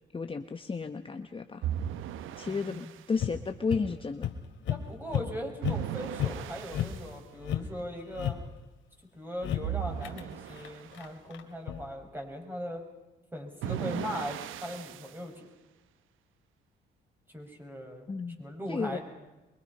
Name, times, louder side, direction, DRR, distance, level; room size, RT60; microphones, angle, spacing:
voice 1, 0.1-1.7 2.4-4.3 18.1-18.4 18.7-19.0, left 4 dB, 25° left, 7 dB, 1.1 m, -33 dB
sound 1, 1.6-3.0 5.6-7.1 9.6-11.0 13.6-15.2, right 11 dB, 85° right, 0.9 m, -37 dB
voice 2, 2.4-2.9 4.7-8.4 9.1-12.8 13.3-15.5 17.3-18.1 18.4-19.0, equal, 10° right, 2 dB, 6.3 m, -39 dB
sound 2, 3.2-3.8 4.2-4.4 4.6-4.8 5.1-5.3 5.6-5.8 6.2-6.4 6.7-7.0 7.3-8.4 9.4-9.7 10.0-10.2 10.5-11.9, left 11 dB, 75° left, 2.5 m, -32 dB
24.0 x 24.0 x 5.6 m, 1.1 s
cardioid pair, 90°, 20 cm